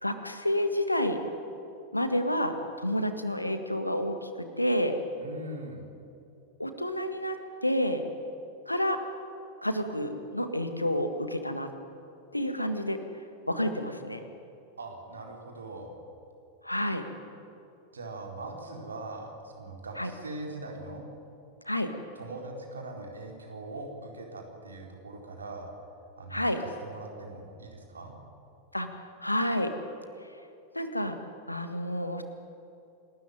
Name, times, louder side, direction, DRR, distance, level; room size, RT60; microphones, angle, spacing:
voice 1, 0.0-1.2 1.9-5.0 6.6-8.0 8.7-9.0 9.6-11.7 12.3-13.0 13.5-14.2 16.6-17.0 20.0-20.1 21.7-21.9 26.3-26.6 28.7-28.9 29.2-29.8 30.7-31.2 31.5-32.2, equal, 85° left, 8 dB, 1.7 m, -29 dB
voice 2, 5.2-5.8 14.8-15.9 17.9-21.0 22.1-25.7 26.2-28.1, right 2 dB, 75° right, 1 dB, 4.3 m, -41 dB
28.0 x 13.0 x 9.9 m, 2.7 s
figure-of-eight pair, 90°, 0 cm